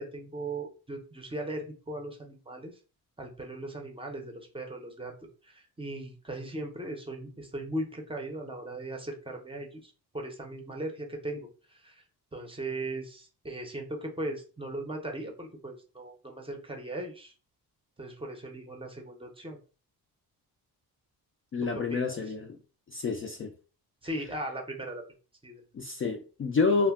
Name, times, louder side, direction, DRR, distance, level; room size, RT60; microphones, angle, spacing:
voice 1, 0.0-2.7 3.2-5.1 5.4-12.0 12.3-17.3 18.0-19.6 21.6-22.2 24.0-25.0 25.4-25.6, right 1 dB, 15° right, 2 dB, 0.6 m, -38 dB
voice 2, 21.5-22.6 22.9-23.5 25.7-26.9, left 4 dB, 35° left, 3 dB, 0.4 m, -28 dB
2.2 x 2.1 x 3.4 m, 0.36 s
cardioid pair, 105°, 39 cm